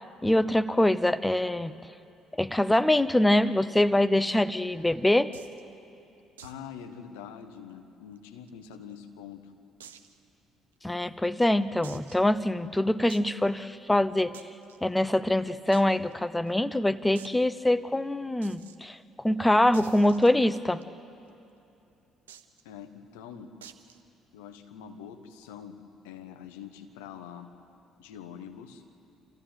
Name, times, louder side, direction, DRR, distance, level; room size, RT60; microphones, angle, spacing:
voice 1, 0.2-1.9 2.3-5.3 10.8-14.5 14.8-20.8, left 1 dB, 10° left, 14 dB, 0.7 m, -24 dB
sound 1, 5.3-5.6 6.4-6.7 6.9-7.0 7.4-7.5 8.2-8.9 9.8-10.2 10.7-10.8 11.8-12.3 13.1-13.3 14.3-14.8 15.7-15.8 16.1-16.2 16.5-16.6 17.1-17.4 18.4-18.8 19.7-20.8 22.3-22.6 23.6-24.0, right 8 dB, 85° right, 0.7 m, -49 dB
voice 2, 6.4-9.5 22.6-23.5 24.3-25.8 26.0-27.5 28.0-28.8, left 8 dB, 80° left, 6 dB, 1.4 m, -44 dB
27.0 x 15.0 x 9.2 m, 2.7 s
hypercardioid pair, 50°, 0 cm